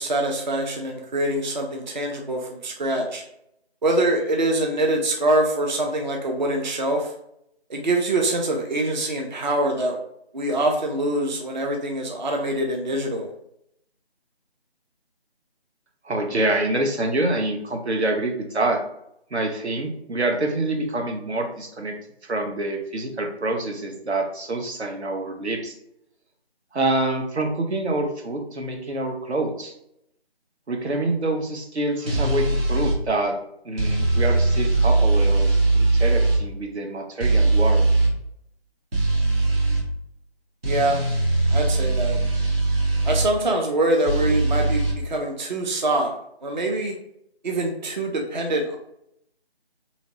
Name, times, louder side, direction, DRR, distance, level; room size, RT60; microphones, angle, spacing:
voice 1, 0.0-3.2 3.8-7.1 7.7-10.0 10.3-13.3 40.6-41.0 41.5-42.2 43.0-46.1 46.4-46.9 47.4-48.8, right 1 dB, 45° right, 1 dB, 0.4 m, -24 dB
voice 2, 16.0-18.8 19.3-22.0 22.2-25.8 26.7-29.7 30.7-33.4 33.6-37.8, right 2 dB, 85° right, 2 dB, 0.8 m, -26 dB
sound 1, 32.1-33.0 33.8-36.4 37.2-38.1 38.9-39.8 40.6-43.3 44.1-44.9, right 2 dB, 65° right, 1.4 m, -20 dB
2.9 x 2.8 x 2.7 m, 0.77 s
figure-of-eight pair, 160°, 32 cm